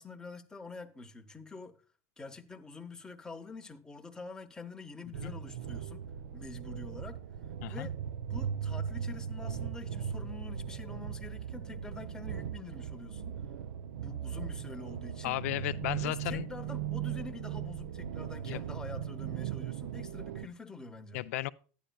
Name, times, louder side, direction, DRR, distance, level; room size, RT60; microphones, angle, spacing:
voice 1, 0.0-1.8 2.2-6.1 6.3-7.2 7.7-7.9 8.3-13.3 14.0-15.4 16.0-21.2, left 3 dB, 10° left, 0.7 m, -46 dB
sound 1, 5.1-20.5, right 8 dB, 90° right, 0.4 m, -38 dB
voice 2, 15.2-16.5 18.5-18.6 21.1-21.5, left 17 dB, 75° left, 0.4 m, -34 dB
11.5 x 10.0 x 2.3 m
supercardioid pair, 140°, 8 cm